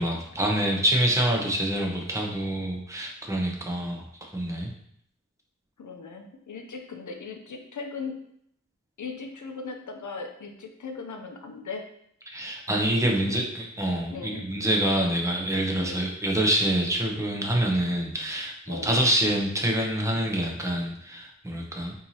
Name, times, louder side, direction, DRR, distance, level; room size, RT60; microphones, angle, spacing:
voice 1, 0.0-4.0 4.3-4.7 12.3-21.9, right 1 dB, 10° right, 0 dB, 0.7 m, -26 dB
voice 2, 5.8-8.2 9.0-11.8 13.0-13.2 14.1-14.5 15.8-16.1 18.7-19.0, left 4 dB, 70° left, 4 dB, 0.6 m, -38 dB
4.5 x 2.8 x 2.8 m, 0.70 s
wide cardioid pair, 55°, 31 cm